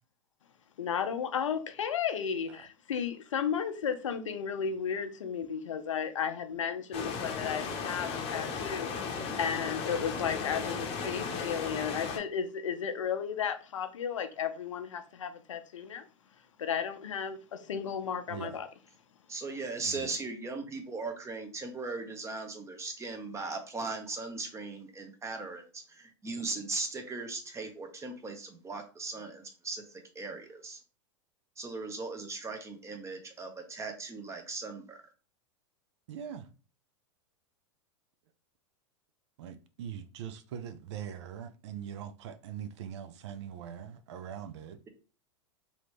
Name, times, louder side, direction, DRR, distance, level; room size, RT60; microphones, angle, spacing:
voice 1, 0.8-16.1 16.6-18.7, left 7 dB, 85° left, 0.5 m, -34 dB
sound 1, 6.9-12.2, left 5 dB, 40° left, 0.8 m, -35 dB
voice 2, 19.3-30.8 31.6-35.0, right 3 dB, 20° right, 0.8 m, -38 dB
voice 3, 36.1-36.5 39.4-44.8, right 8 dB, 65° right, 0.5 m, -42 dB
2.9 x 2.8 x 3.2 m
hypercardioid pair, 100°, 16 cm